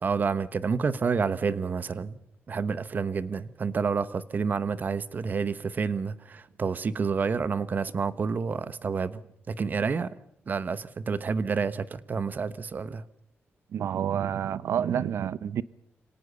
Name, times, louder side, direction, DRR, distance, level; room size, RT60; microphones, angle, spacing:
voice 1, 0.0-2.2 2.5-9.2 9.5-10.1 10.5-13.0, right 5 dB, 40° right, 15 dB, 1.1 m, -29 dB
voice 2, 13.7-15.6, right 9 dB, 80° right, 17 dB, 0.7 m, -28 dB
25.5 x 18.0 x 6.9 m, 0.74 s
wide cardioid pair, 125°, 4 cm